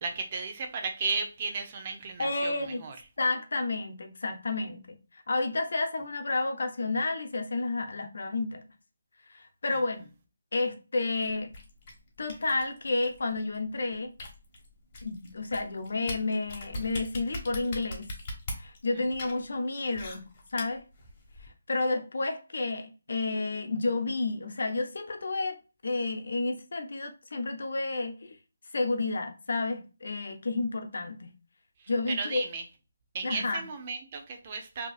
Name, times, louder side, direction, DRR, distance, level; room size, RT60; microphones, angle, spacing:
voice 1, 0.0-3.0 9.7-9.8 31.8-32.6 33.1-34.9, right 4 dB, 35° right, 0.8 m, -34 dB
voice 2, 2.2-2.8 3.2-4.8 5.1-8.6 9.3-10.1 10.5-11.5 12.2-14.1 15.0-18.1 18.6-20.8 21.4-25.6 25.8-28.4 28.7-31.3 31.9-32.4 33.2-33.7, left 3 dB, 65° left, 0.8 m, -31 dB
sound 1, 11.2-21.5, left 1 dB, 35° left, 1.2 m, -42 dB
4.7 x 2.9 x 2.4 m
figure-of-eight pair, 155°, 0 cm